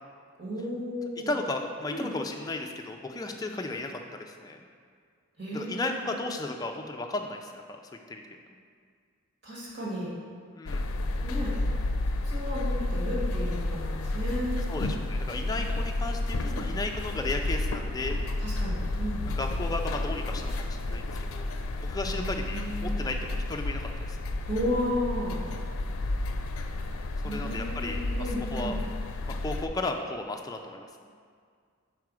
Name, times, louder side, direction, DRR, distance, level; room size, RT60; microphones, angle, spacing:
voice 1, 0.4-1.3 1.9-2.1 5.4-6.2 9.4-10.1 11.2-11.6 12.2-14.7 16.4-16.7 18.4-19.2 22.0-23.2 24.5-25.4 27.2-28.7, left 1 dB, 50° right, -6 dB, 1.7 m, -34 dB
voice 2, 1.3-4.6 5.5-7.6 8.1-8.2 10.6-10.8 14.7-18.2 19.4-21.5 21.8-24.2 27.2-28.8 29.4-30.9, left 2 dB, 15° left, 3 dB, 0.4 m, -34 dB
sound 1, 10.7-29.7, left 2 dB, 80° left, 0.4 m, -31 dB
4.8 x 4.7 x 6.1 m, 2.1 s
head